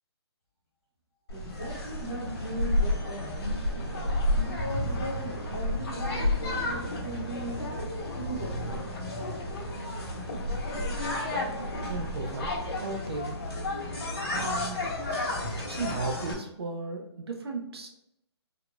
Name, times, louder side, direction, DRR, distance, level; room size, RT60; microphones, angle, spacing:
sound 1, 1.3-16.3, left 1 dB, 60° left, 1.3 m, -31 dB
voice 1, 1.3-3.6 4.3-7.6 8.1-8.8, right 1 dB, 15° left, -7 dB, 0.8 m, -38 dB
voice 2, 11.9-12.5 12.8-13.4 14.3-14.9 15.6-17.9, right 3 dB, 65° right, 3 dB, 0.5 m, -35 dB
3.6 x 2.4 x 2.2 m, 0.81 s
hypercardioid pair, 175°, 14 cm